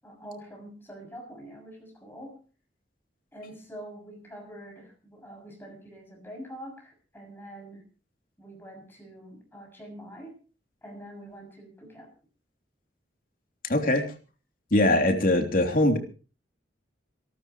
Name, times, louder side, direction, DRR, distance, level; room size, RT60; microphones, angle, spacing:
voice 1, 0.0-2.4 3.3-7.8 8.4-10.4 10.8-12.1, equal, 10° left, 1 dB, 7.1 m, -45 dB
voice 2, 13.7-14.0 14.7-16.0, left 1 dB, 50° left, 4 dB, 3.1 m, -22 dB
28.0 x 12.5 x 3.2 m, 0.36 s
head